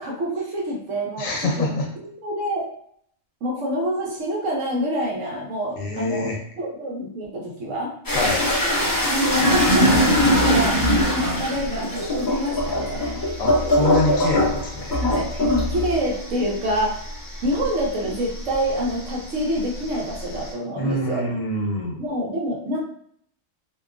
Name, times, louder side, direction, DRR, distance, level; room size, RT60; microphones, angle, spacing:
voice 1, 0.0-2.7 3.4-7.9 9.1-13.2 14.9-17.0 17.4-21.2 22.0-22.8, equal, 70° right, -2 dB, 1.0 m, -26 dB
voice 2, 1.2-1.9 5.8-6.4 8.1-8.4 13.4-15.0 20.8-22.0, left 2 dB, 75° left, -1 dB, 1.1 m, -25 dB
sound 1, 8.1-19.0 19.4-20.5, left 1 dB, 30° left, 0.4 m, -22 dB
2.8 x 2.2 x 2.4 m, 0.65 s
omnidirectional pair, 1.4 m